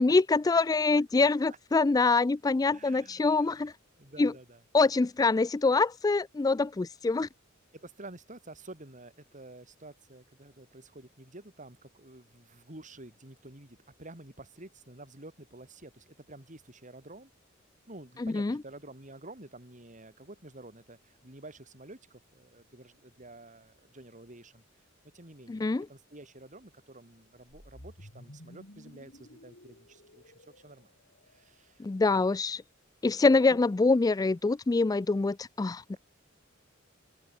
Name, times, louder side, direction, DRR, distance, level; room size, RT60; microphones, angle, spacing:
voice 1, 0.0-3.7 4.2-4.3 4.7-7.3 18.2-18.6 25.5-25.9 31.8-32.6 33.0-35.8, left 3 dB, 20° left, 0.3 m, -25 dB
voice 2, 2.7-3.7 4.0-4.6 7.7-17.3 17.9-24.6 25.1-25.6 25.9-30.9 31.3-32.3 33.5-33.6, right 2 dB, 40° right, 5.0 m, -50 dB
sound 1, 27.5-31.7, left 1 dB, 60° left, 6.0 m, -53 dB
open air
head